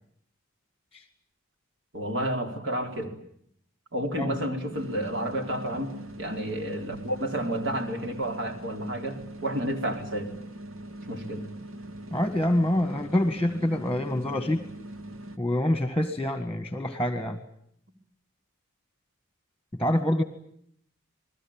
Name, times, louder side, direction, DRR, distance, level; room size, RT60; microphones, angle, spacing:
voice 1, 1.9-3.1 3.9-5.9 6.2-10.3 11.1-11.4, right 1 dB, 55° right, 4 dB, 4.4 m, -30 dB
sound 1, 4.7-15.4, right 1 dB, 80° right, 2.0 m, -42 dB
voice 2, 12.1-14.6 15.4-17.4 19.7-20.2, left 1 dB, 10° left, 9 dB, 1.8 m, -26 dB
29.0 x 21.0 x 8.9 m, 0.70 s
head